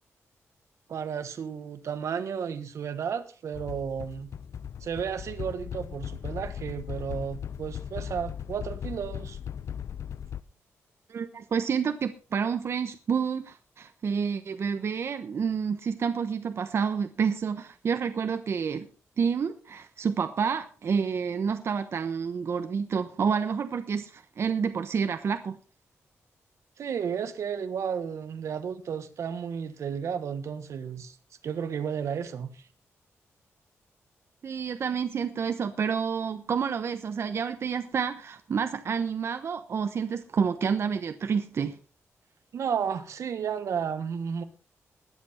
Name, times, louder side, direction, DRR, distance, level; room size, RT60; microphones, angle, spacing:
voice 1, 0.9-4.3 4.8-9.4 26.8-31.2 31.4-32.7 42.5-44.4, right 7 dB, 75° right, 1.5 m, -33 dB
sound 1, 3.5-10.4, left 8 dB, 70° left, 0.7 m, -38 dB
voice 2, 11.1-18.9 19.2-25.6 34.4-41.8, right 6 dB, 55° right, 1.0 m, -29 dB
21.0 x 7.9 x 4.4 m
wide cardioid pair, 125°, 5 cm